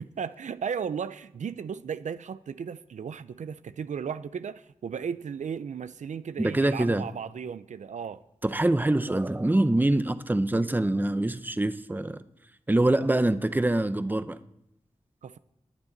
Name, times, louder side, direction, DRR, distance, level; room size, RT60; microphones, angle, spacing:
voice 1, 0.0-8.2 15.2-15.4, right 7 dB, 90° right, 0.4 m, -35 dB
voice 2, 6.4-7.1 8.4-12.2 12.7-14.4, right 1 dB, 15° right, 0.6 m, -24 dB
19.5 x 9.7 x 3.9 m
wide cardioid pair, 90°, 12 cm